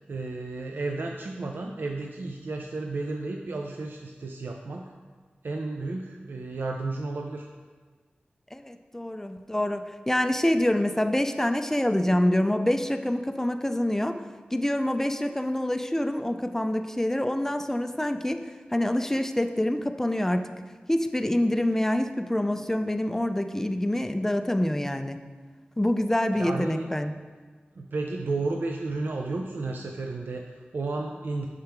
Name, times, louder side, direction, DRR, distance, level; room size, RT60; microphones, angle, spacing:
voice 1, 0.0-4.9 5.4-7.5 26.3-26.9 27.7-31.5, right 3 dB, 70° right, 2 dB, 0.4 m, -32 dB
voice 2, 8.5-14.2 14.5-18.4 18.7-20.5 20.9-25.2 25.8-27.1, left 1 dB, 10° left, 8 dB, 0.4 m, -26 dB
6.6 x 3.5 x 4.4 m, 1.5 s
wide cardioid pair, 60°, 4 cm